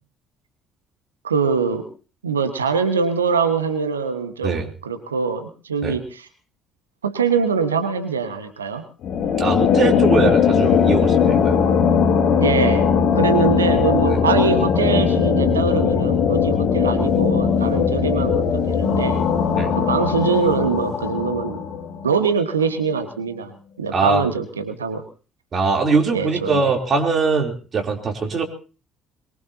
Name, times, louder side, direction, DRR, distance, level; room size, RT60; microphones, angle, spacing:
voice 1, 1.2-1.9 2.2-6.3 7.0-8.8 12.4-12.9 13.2-19.2 19.7-21.6 22.0-23.5 23.8-25.0 26.1-26.6, right 5 dB, 85° right, 8 dB, 1.4 m, -23 dB
sound 1, 9.0-22.2, left 7 dB, 55° left, 2.2 m, -19 dB
voice 2, 9.4-11.6 14.1-14.2 19.5-19.7 23.9-24.2 25.5-28.4, right 4 dB, 40° right, 2 dB, 3.5 m, -21 dB
22.5 x 22.5 x 2.9 m, 0.37 s
figure-of-eight pair, 50°, 0 cm